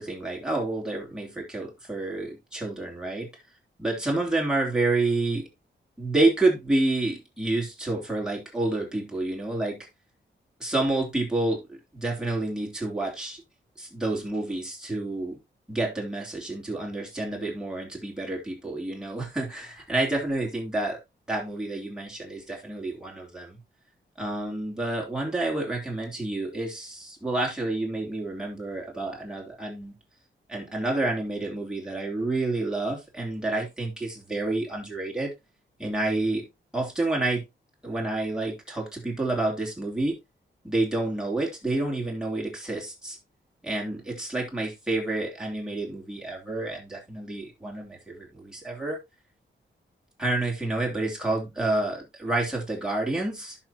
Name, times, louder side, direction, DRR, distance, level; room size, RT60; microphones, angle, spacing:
voice 1, 0.0-3.3 3.8-5.5 6.0-9.9 10.6-11.6 11.9-13.4 13.8-15.4 15.7-21.0 21.3-23.6 24.2-29.9 30.5-35.3 35.8-36.4 36.7-37.4 37.8-40.2 40.6-43.2 43.6-49.0 50.2-53.6, right 2 dB, 5° right, 3.4 m, -29 dB
11.0 x 6.0 x 2.9 m
wide cardioid pair, 125°, 20 cm